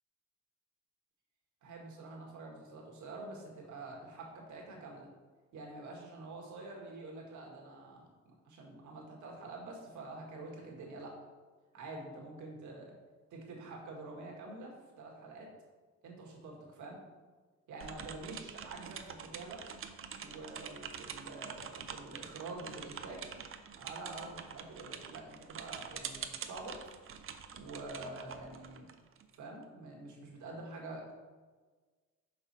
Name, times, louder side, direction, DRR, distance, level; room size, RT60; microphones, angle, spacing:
voice 1, 1.6-5.1 5.5-11.2 11.7-13.0 13.3-15.5 16.0-17.0 17.7-19.0 19.3-19.6 20.2-23.3 23.8-26.8 27.5-28.9 29.3-31.1, right 2 dB, 75° right, -1 dB, 1.8 m, -47 dB
sound 1, 17.8-29.4, right 7 dB, 45° right, 0.6 m, -46 dB
6.0 x 5.4 x 4.2 m, 1.4 s
cardioid pair, 90°, 30 cm